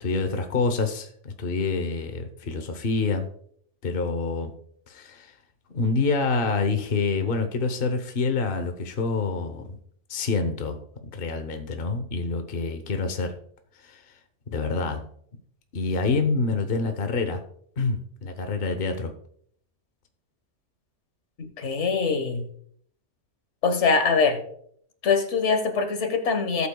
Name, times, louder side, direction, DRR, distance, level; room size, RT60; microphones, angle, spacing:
voice 1, 0.0-3.3 3.8-4.5 4.9-5.3 5.7-9.8 10.1-10.8 11.1-13.4 13.8-14.0 14.5-15.0 15.7-17.4 17.8-19.1, left 4 dB, 50° left, 7 dB, 1.1 m, -27 dB
voice 2, 21.4-22.5 23.6-24.4 25.0-26.7, left 5 dB, 70° left, 6 dB, 1.7 m, -23 dB
18.5 x 8.4 x 2.3 m, 0.65 s
omnidirectional pair, 1.2 m